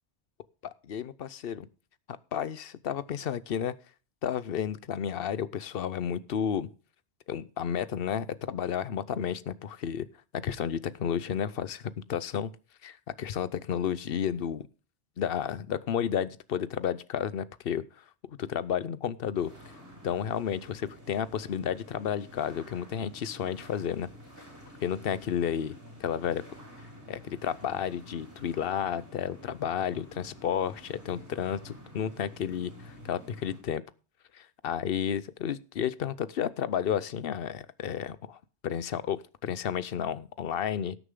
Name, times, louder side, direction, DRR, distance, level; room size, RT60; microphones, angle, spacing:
voice 1, 0.6-1.7 2.1-3.7 4.2-6.7 7.3-10.1 10.4-12.5 12.8-14.6 15.2-17.8 18.4-19.5 20.0-24.1 24.8-25.7 26.0-26.4 27.1-33.8 34.3-38.4 38.6-41.0, left 8 dB, 60° left, 17 dB, 0.9 m, -32 dB
sound 1, 19.3-33.6, equal, 75° right, 6.7 m, -50 dB
18.0 x 6.7 x 3.7 m, 0.36 s
omnidirectional pair, 1.1 m